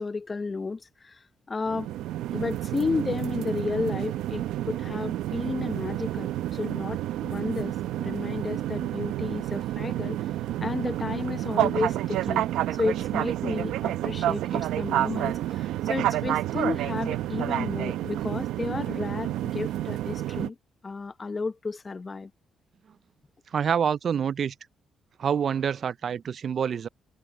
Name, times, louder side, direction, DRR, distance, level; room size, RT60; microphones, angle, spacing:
voice 1, 0.0-1.9 2.3-10.3 10.6-20.6 20.8-22.3, left 4 dB, 30° left, 1.0 m, -32 dB
sound 1, 1.7-20.5, right 13 dB, 85° right, 0.7 m, -29 dB
voice 2, 23.5-24.5 25.2-26.9, right 7 dB, 55° right, 0.3 m, -26 dB
cardioid pair, 90°, 0 cm